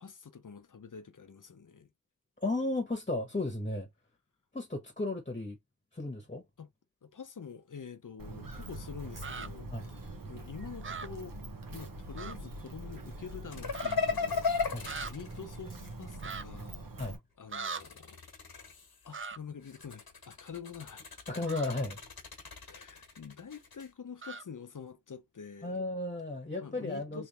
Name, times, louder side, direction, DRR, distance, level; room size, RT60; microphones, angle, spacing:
voice 1, 0.0-1.9 6.6-6.7 7.0-10.0 10.3-11.4 11.7-16.9 17.4-18.2 19.0-21.0 22.7-25.8 26.6-27.3, left 6 dB, 60° left, 0.8 m, -47 dB
voice 2, 2.4-3.9 4.5-5.6 5.9-6.4 9.7-9.9 14.7-14.9 17.0-17.2 21.3-22.0 25.6-27.2, left 2 dB, 20° left, 1.2 m, -34 dB
Walk footsteps, 8.2-17.2, right 1 dB, 65° right, 1.2 m, -44 dB
sound 1, 9.2-9.5 10.8-11.1 12.2-12.3 12.7-12.8 13.7-14.0 14.8-15.1 16.2-16.4 17.5-17.8 19.1-19.4 21.5-21.7 24.2-24.4, right 5 dB, 35° right, 0.4 m, -40 dB
sound 2, 13.5-16.3 17.5-19.1 19.6-23.9, left 5 dB, 80° left, 1.3 m, -36 dB
3.3 x 3.2 x 3.0 m
wide cardioid pair, 70°, 36 cm